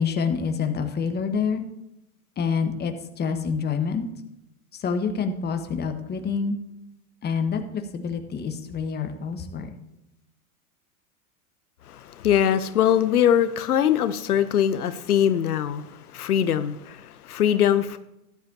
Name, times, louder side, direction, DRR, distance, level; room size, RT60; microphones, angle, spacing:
voice 1, 0.0-1.6 2.4-4.0 4.7-6.6 7.2-9.7, left 5 dB, 20° left, 7 dB, 1.3 m, -27 dB
voice 2, 11.9-18.0, left 9 dB, 80° left, 12 dB, 0.8 m, -22 dB
13.5 x 12.0 x 2.8 m, 0.85 s
hypercardioid pair, 100°, 44 cm